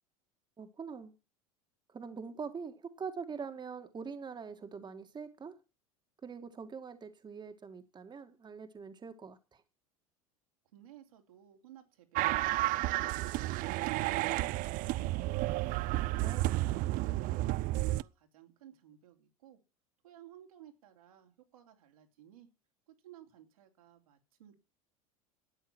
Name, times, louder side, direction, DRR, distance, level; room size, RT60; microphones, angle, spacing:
voice 1, 0.6-1.1 1.9-5.6 6.2-9.6 16.2-16.5, right 5 dB, 25° right, 2.0 m, -43 dB
voice 2, 10.7-15.2 15.7-19.6 20.0-22.5 22.9-24.5, right 11 dB, 75° right, 3.3 m, -58 dB
sound 1, 12.1-18.0, right 18 dB, 50° right, 0.6 m, -31 dB
13.0 x 9.3 x 6.2 m
hypercardioid pair, 80°, 18 cm